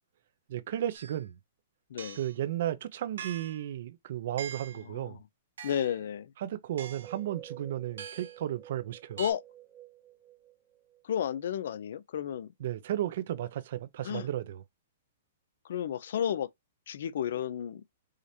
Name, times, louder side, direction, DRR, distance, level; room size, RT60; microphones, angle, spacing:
voice 1, 0.5-1.3 2.1-5.2 6.4-9.2 12.6-14.6, right 12 dB, 50° right, 0.6 m, -34 dB
sound 1, 0.9-1.2 2.0-2.4 3.2-3.7 4.4-4.9 5.6-6.0 6.8-7.2 8.0-8.4 9.2-9.3, right 8 dB, 80° right, 1.2 m, -43 dB
voice 2, 4.9-5.2 5.6-6.3 9.2-9.4 11.0-12.5 14.0-14.3 15.7-16.5 16.9-17.8, left 9 dB, 60° left, 0.5 m, -32 dB
sound 2, 6.8-11.4, right 12 dB, 5° right, 1.2 m, -50 dB
4.9 x 2.9 x 2.7 m
hypercardioid pair, 170°, 0 cm